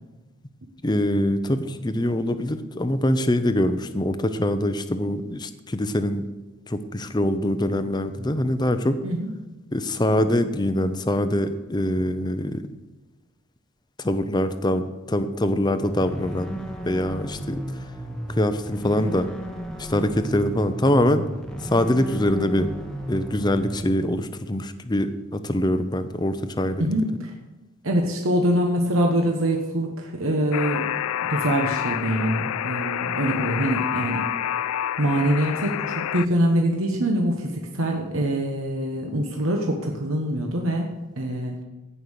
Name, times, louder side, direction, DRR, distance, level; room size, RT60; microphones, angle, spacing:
voice 1, 0.8-6.3 6.7-9.0 9.7-12.6 14.0-17.6 18.3-19.3 19.8-21.2 21.6-22.7 23.1-26.9, left 1 dB, 20° left, 10 dB, 0.6 m, -24 dB
sound 1, 15.9-23.8, right 1 dB, 5° left, 1.0 m, -34 dB
voice 2, 26.8-27.3 27.8-30.9 31.2-34.3 35.0-41.6, right 1 dB, 75° right, 1 dB, 1.2 m, -24 dB
Alarm, 30.5-36.3, left 11 dB, 85° left, 0.3 m, -28 dB
16.0 x 5.6 x 6.5 m, 1.1 s
head